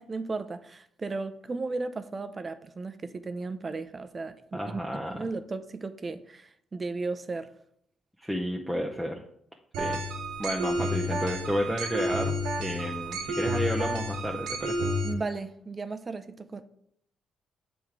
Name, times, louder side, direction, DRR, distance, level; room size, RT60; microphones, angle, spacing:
voice 1, 0.0-4.8 5.1-7.5 15.0-16.6, right 3 dB, 30° right, 0.5 m, -35 dB
voice 2, 4.5-5.2 8.2-9.2 9.8-10.0 10.4-14.8, equal, ahead, 0.7 m, -31 dB
sound 1, 9.7-15.1, equal, 85° right, 0.8 m, -30 dB
7.2 x 3.6 x 4.6 m
cardioid pair, 90°, 0 cm